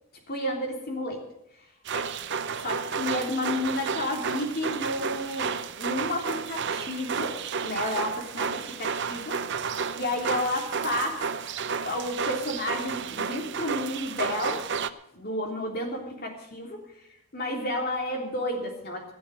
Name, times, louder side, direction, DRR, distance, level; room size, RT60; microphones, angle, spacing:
voice 1, 0.3-1.2 1.9-2.1 2.6-5.5 5.8-9.4 9.9-11.3 11.8-14.6 15.1-16.8 17.3-19.1, left 1 dB, 45° left, 1 dB, 3.3 m, -31 dB
sound 1, 1.9-14.9, right 6 dB, 55° right, 0.6 m, -32 dB
16.5 x 7.0 x 9.2 m, 0.81 s
head